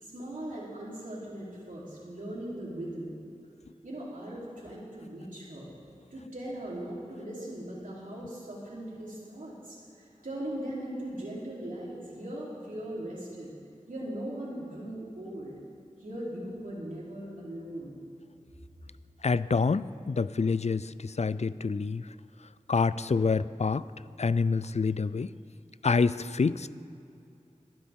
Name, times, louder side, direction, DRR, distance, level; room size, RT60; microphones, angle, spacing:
voice 1, 0.0-3.1 3.8-5.7 6.1-13.5 13.9-15.6 16.0-18.0, right 1 dB, 85° right, -6 dB, 3.8 m, -39 dB
voice 2, 19.2-22.1 22.7-23.8 24.2-25.3 25.8-26.7, left 4 dB, 55° left, 16 dB, 0.4 m, -27 dB
22.0 x 10.0 x 3.8 m, 2.7 s
wide cardioid pair, 50°, 13 cm